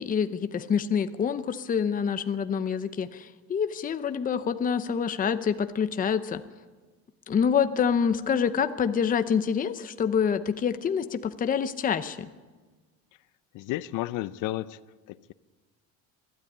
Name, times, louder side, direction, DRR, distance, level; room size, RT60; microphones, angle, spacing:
voice 1, 0.0-6.4 7.3-12.3, left 7 dB, 25° left, 10 dB, 0.8 m, -26 dB
voice 2, 13.5-14.8 15.1-15.3, left 16 dB, 65° left, 15 dB, 0.7 m, -32 dB
22.0 x 13.0 x 9.4 m, 1.3 s
cardioid pair, 150°, 34 cm